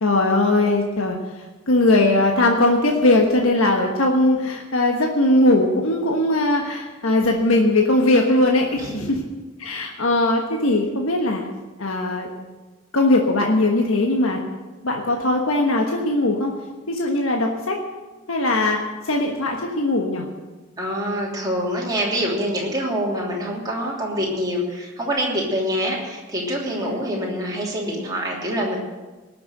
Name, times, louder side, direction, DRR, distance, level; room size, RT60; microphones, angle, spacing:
voice 1, 0.0-1.2 1.7-9.2 9.6-11.5 11.8-12.3 12.9-14.4 14.8-16.5 16.9-17.8 18.3-20.3 26.7-27.0, left 2 dB, 85° left, 1 dB, 1.4 m, -20 dB
voice 2, 8.8-9.1 20.8-28.8, equal, 20° right, -3 dB, 3.0 m, -25 dB
18.5 x 6.8 x 7.9 m, 1.2 s
head